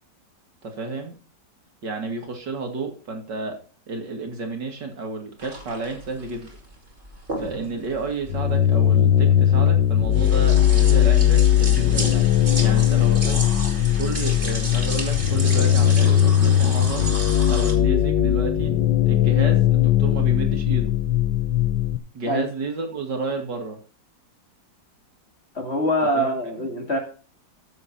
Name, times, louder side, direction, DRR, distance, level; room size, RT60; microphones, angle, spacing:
voice 1, 0.6-1.1 1.8-3.6 3.9-6.5 7.4-12.3 12.6-13.4 14.0-17.1 17.5-18.8 19.1-20.9 22.1-23.8 26.1-26.3 26.6-26.7, right 3 dB, 65° right, 3 dB, 2.8 m, -31 dB
sound 1, 5.4-17.7, right 1 dB, 25° right, 2.9 m, -33 dB
sound 2, 8.3-22.0, left 11 dB, 75° left, 1.5 m, -19 dB
voice 2, 25.5-27.0, equal, 35° left, 2 dB, 2.9 m, -24 dB
14.0 x 7.2 x 4.3 m, 0.38 s
omnidirectional pair, 2.0 m